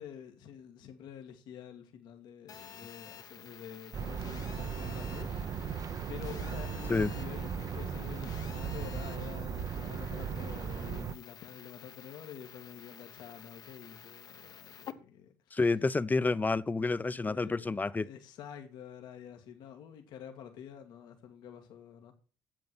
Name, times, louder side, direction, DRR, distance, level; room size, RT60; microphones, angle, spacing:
voice 1, 0.0-15.6 17.1-17.7 18.0-22.1, left 8 dB, 75° left, 1.8 m, -48 dB
Telephone, 2.5-14.9, left 8 dB, 55° left, 1.1 m, -51 dB
sound 1, 3.9-11.1, right 7 dB, 50° right, 0.8 m, -37 dB
voice 2, 15.5-18.1, left 3 dB, 20° left, 0.7 m, -29 dB
9.0 x 7.7 x 6.0 m
supercardioid pair, 65°, 8 cm